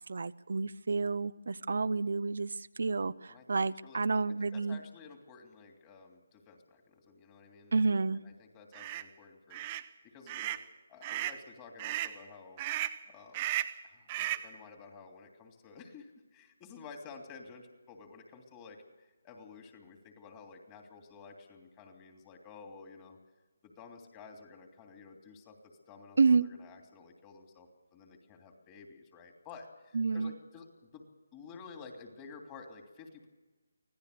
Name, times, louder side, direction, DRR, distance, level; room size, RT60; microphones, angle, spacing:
voice 1, 0.0-4.8 7.7-8.2 26.2-26.5 29.9-30.4, right 4 dB, 65° right, 13 dB, 0.6 m, -29 dB
voice 2, 3.8-7.8 8.1-9.7 10.0-10.6 10.9-12.6 13.1-13.5 13.8-23.2 23.6-31.0 31.3-33.3, left 4 dB, 20° left, 4 dB, 3.0 m, -52 dB
sound 1, 8.7-9.0 9.5-9.9 10.3-10.6 11.0-11.4 11.8-12.2 12.6-13.0 13.3-13.8 14.1-14.5, right 14 dB, 25° right, 0.8 m, -35 dB
25.0 x 17.0 x 6.8 m, 1.2 s
figure-of-eight pair, 155°, 0 cm